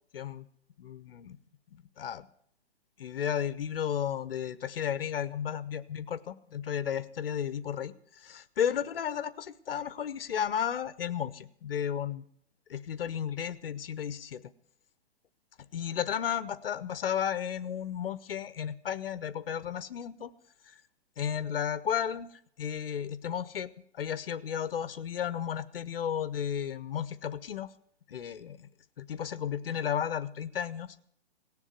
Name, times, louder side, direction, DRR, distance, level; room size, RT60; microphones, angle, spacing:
voice 1, 0.1-0.5 0.8-1.4 1.7-2.3 3.0-12.2 12.7-14.4 15.7-20.3 20.7-20.8 21.2-27.7 28.1-28.7 29.0-31.0, left 9 dB, 55° left, 15 dB, 0.9 m, -33 dB
18.0 x 7.3 x 9.4 m, 0.67 s
hypercardioid pair, 175°, 34 cm